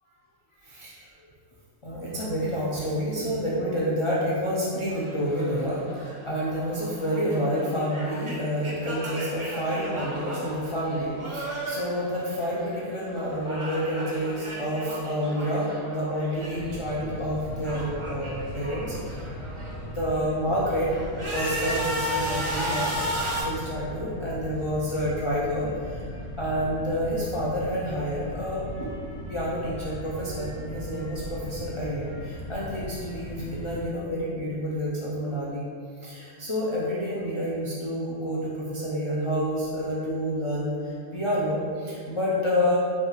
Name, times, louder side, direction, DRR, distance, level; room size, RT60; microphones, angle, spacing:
voice 1, 1.8-19.3 19.9-20.9 21.3-23.0 23.3-29.0 29.3-35.7 36.0-42.8, equal, 55° left, -7 dB, 0.3 m, -29 dB
sound 1, 4.9-12.9 13.2-16.9 17.2-19.9 20.4-23.4, equal, 40° right, 0.4 m, -35 dB
sound 2, 16.5-33.8, equal, 85° left, 1.0 m, -38 dB
5.4 x 2.4 x 3.0 m, 2.3 s
omnidirectional pair, 1.3 m